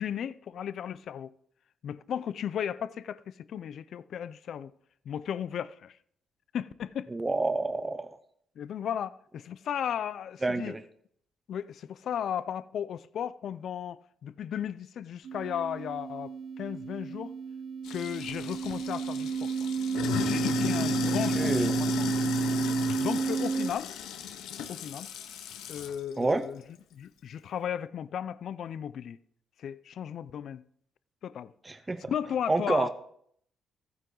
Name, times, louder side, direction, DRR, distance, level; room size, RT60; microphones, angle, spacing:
voice 1, 0.0-1.3 1.8-4.7 5.1-6.0 6.5-7.1 8.6-10.8 11.5-17.3 17.9-19.5 20.2-22.2 23.0-23.9 24.7-25.1 25.7-26.6 26.9-29.2 29.6-30.6 31.2-31.5 32.1-32.9, left 9 dB, 65° left, 0.5 m, -35 dB
voice 2, 7.1-8.1 10.4-10.8 21.0-21.8 26.2-26.4 31.6-32.1 32.5-32.9, right 2 dB, 20° right, 0.8 m, -29 dB
sound 1, 15.2-23.7, right 6 dB, 70° right, 1.1 m, -31 dB
Sink (filling or washing), 17.8-26.0, left 8 dB, 90° left, 1.0 m, -35 dB
15.0 x 9.3 x 3.9 m
cardioid pair, 90°, 0 cm